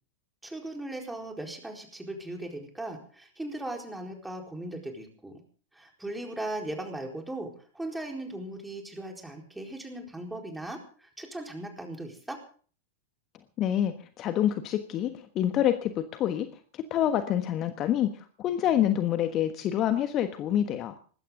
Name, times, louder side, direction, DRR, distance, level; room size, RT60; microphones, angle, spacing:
voice 1, 0.4-5.4 5.7-12.4, right 1 dB, 5° right, 2 dB, 4.3 m, -38 dB
voice 2, 13.6-16.5 16.7-20.9, left 11 dB, 35° left, 9 dB, 1.3 m, -27 dB
20.0 x 16.0 x 3.9 m, 0.43 s
figure-of-eight pair, 90°, 0 cm